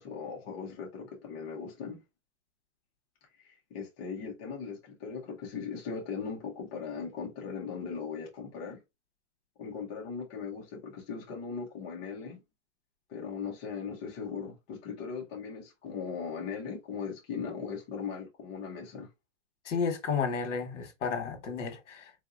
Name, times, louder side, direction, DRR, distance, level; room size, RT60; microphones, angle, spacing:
voice 1, 0.0-2.0 3.4-8.8 9.6-12.4 13.1-19.1, left 5 dB, 15° left, 0.5 m, -39 dB
voice 2, 19.6-22.1, left 5 dB, 65° left, 1.3 m, -32 dB
3.8 x 2.7 x 2.4 m
hypercardioid pair, 160°, 38 cm